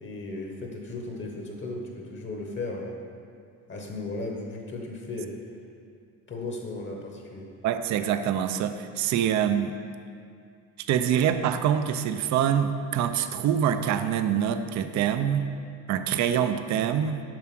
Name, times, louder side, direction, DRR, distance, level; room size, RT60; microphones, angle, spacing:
voice 1, 0.0-3.0 3.7-5.3 6.3-7.5, left 2 dB, 30° left, 1 dB, 1.0 m, -35 dB
voice 2, 7.6-9.8 10.9-15.5 15.9-17.2, right 9 dB, 45° right, 9 dB, 0.5 m, -25 dB
7.5 x 5.8 x 5.9 m, 2.3 s
cardioid pair, 145°, 41 cm